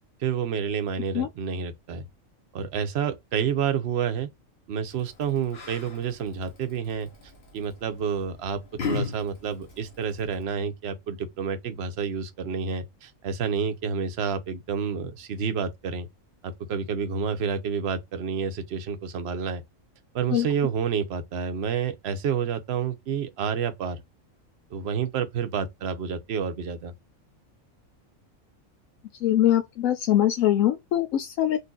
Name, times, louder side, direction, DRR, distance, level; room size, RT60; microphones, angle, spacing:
voice 1, 0.2-2.1 2.5-4.3 4.7-7.1 7.5-8.6 8.9-16.1 16.4-19.6 20.1-24.0 24.7-26.9, right 7 dB, 60° right, 0.8 m, -29 dB
Yell, 4.9-10.4, left 6 dB, 50° left, 1.1 m, -38 dB
voice 2, 29.2-31.6, left 12 dB, 75° left, 1.0 m, -22 dB
4.1 x 2.6 x 2.4 m
omnidirectional pair, 1.4 m